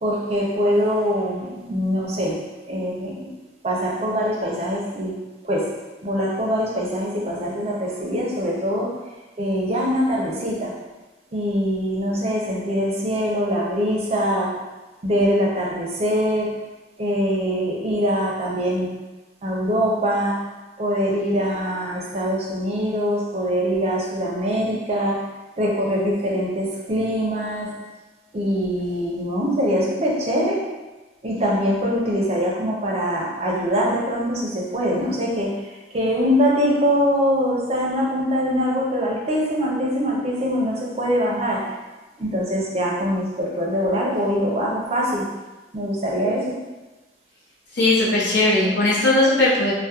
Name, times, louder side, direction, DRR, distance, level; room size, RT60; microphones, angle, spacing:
voice 1, 0.0-2.4 2.7-3.3 3.6-5.2 5.4-5.7 6.0-9.0 9.4-10.8 11.3-14.6 15.0-16.6 17.0-18.9 19.4-20.5 20.8-25.3 25.6-27.8 28.3-30.6 31.2-41.8 42.2-45.3 45.7-46.6, equal, 35° right, -3 dB, 0.5 m, -23 dB
voice 2, 47.7-49.7, left 2 dB, 75° left, -7 dB, 0.7 m, -18 dB
2.2 x 2.1 x 2.8 m, 1.2 s
head